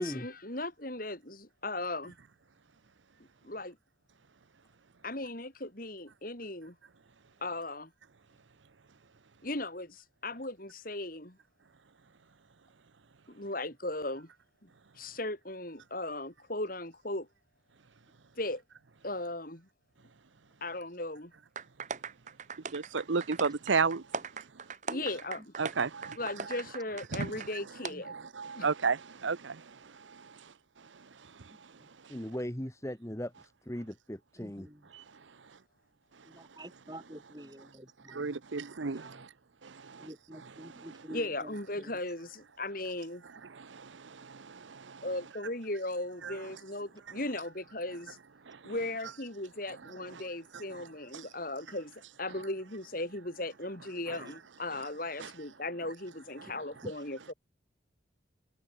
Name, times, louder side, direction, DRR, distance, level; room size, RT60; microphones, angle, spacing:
voice 1, 0.0-2.2 3.4-3.8 5.0-6.8 7.4-7.9 9.4-11.4 13.3-14.3 14.6-14.7 15.0-17.3 18.4-18.6 19.0-19.7 20.6-21.3 24.9-25.5 26.2-28.1 28.6-28.7 41.1-43.2 45.0-48.2 48.6-51.9 52.2-57.3, left 2 dB, 45° left, 5.6 m, -37 dB
sound 1, 21.6-27.5 27.8-27.9, right 5 dB, 40° right, 1.3 m, -40 dB
voice 2, 22.7-24.0 25.6-26.2 27.1-27.3 28.1-30.4 34.9-35.0 38.1-39.3 39.6-40.1 40.6-41.0 43.5-45.0 46.2-46.3 48.5-48.7 51.1-51.2 54.1-54.2 55.2-55.3 56.4-56.5, right 5 dB, 75° right, 0.8 m, -34 dB
voice 3, 31.5-31.9 34.4-34.9 36.2-38.3 38.8-39.1 40.0-41.9 56.8-56.9, equal, 20° right, 7.5 m, -48 dB
voice 4, 32.1-34.7, equal, 15° left, 1.5 m, -38 dB
head